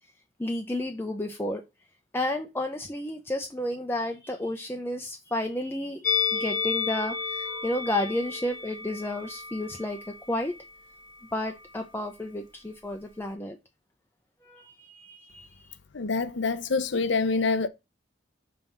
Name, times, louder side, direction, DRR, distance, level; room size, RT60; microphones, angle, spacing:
voice 1, 0.4-1.6 2.1-10.0 10.3-10.5 11.3-13.6 14.4-15.8, left 1 dB, 10° left, 0.5 m, -32 dB
Musical instrument, 6.0-11.3 11.5-11.7, left 6 dB, 45° left, 1.1 m, -32 dB
voice 2, 15.9-17.7, left 4 dB, 70° left, 0.7 m, -26 dB
5.4 x 3.4 x 5.3 m
head